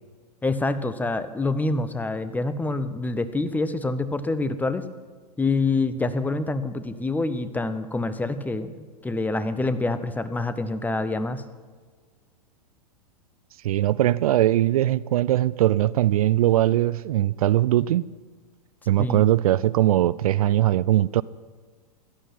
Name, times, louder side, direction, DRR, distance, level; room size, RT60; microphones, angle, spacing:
voice 1, 0.4-4.9 5.4-8.7 9.0-11.4 19.0-19.3, left 3 dB, 10° left, 12 dB, 0.9 m, -26 dB
voice 2, 13.6-18.0 18.9-21.2, right 13 dB, 60° right, 20 dB, 0.4 m, -20 dB
16.5 x 12.5 x 5.8 m, 1.5 s
hypercardioid pair, 105°, 21 cm